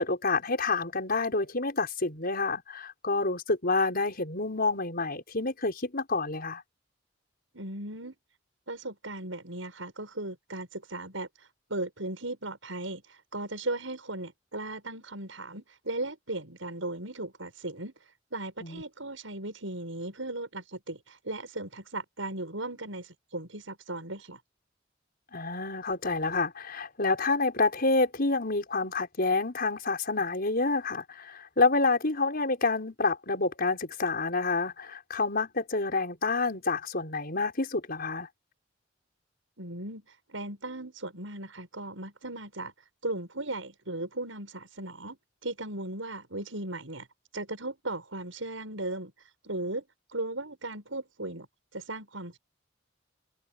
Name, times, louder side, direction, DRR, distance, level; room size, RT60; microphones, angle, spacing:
voice 1, 0.0-6.6 18.6-18.8 25.3-38.3, left 3 dB, 50° left, 5.9 m, -28 dB
voice 2, 7.5-8.1 8.7-17.9 18.3-24.4 39.6-42.7 43.0-47.1 47.3-49.1 49.4-51.5 51.7-52.4, right 2 dB, 90° right, 7.0 m, -37 dB
head